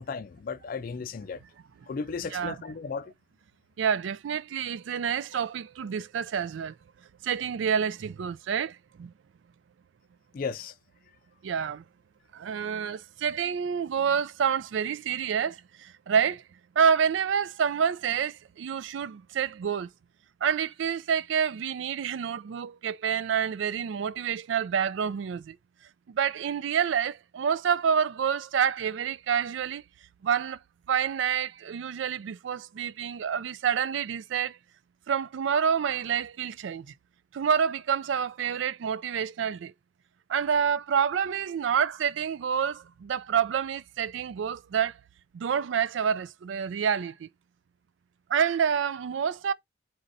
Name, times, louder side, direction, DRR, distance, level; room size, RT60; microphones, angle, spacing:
voice 1, 0.0-1.4 1.9-3.1 10.3-10.7, left 5 dB, 45° left, 0.3 m, -35 dB
voice 2, 3.8-6.7 7.2-9.1 11.4-11.8 12.3-16.4 16.8-19.9 20.4-25.6 26.1-29.8 30.2-30.6 30.9-34.6 35.1-36.9 37.3-39.7 40.3-44.9 45.3-47.3 48.3-49.5, right 7 dB, 75° right, 0.3 m, -28 dB
4.2 x 2.6 x 3.9 m
head